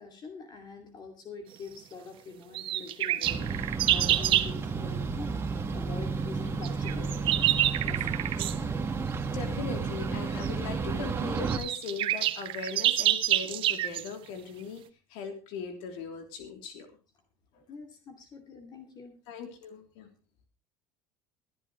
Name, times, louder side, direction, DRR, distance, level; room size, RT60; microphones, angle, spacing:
voice 1, 0.0-5.5 5.7-7.5 7.8-8.1 17.7-19.2, left 4 dB, 45° left, 5 dB, 2.5 m, -45 dB
sound 1, 2.5-4.5 6.6-8.6 10.4-10.5 11.1-11.2 11.4-14.1, right 13 dB, 55° right, 1.1 m, -27 dB
sound 2, 3.2-11.6, right 4 dB, 25° right, 1.8 m, -32 dB
voice 2, 9.3-14.8 15.1-16.9 17.5-17.6 19.3-20.1, left 5 dB, 80° left, 5 dB, 3.2 m, -39 dB
21.0 x 11.0 x 3.2 m, 0.30 s
supercardioid pair, 110°, 10 cm